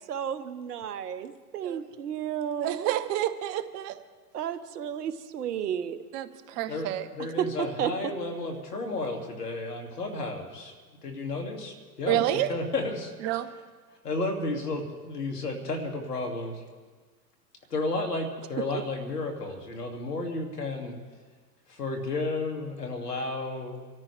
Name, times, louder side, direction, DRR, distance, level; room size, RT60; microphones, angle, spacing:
voice 1, 0.1-2.9 4.3-6.0 7.2-8.1 18.7-18.8, right 9 dB, 75° right, 12 dB, 1.1 m, -32 dB
voice 2, 2.6-4.0 6.1-7.1 12.1-12.5 13.2-13.5, right 13 dB, 35° right, 13 dB, 0.8 m, -29 dB
voice 3, 6.7-10.7 11.0-13.1 14.0-16.6 17.7-20.9 21.7-23.9, left 2 dB, 85° left, 4 dB, 2.5 m, -32 dB
25.5 x 13.5 x 3.3 m, 1.4 s
hypercardioid pair, 110°, 46 cm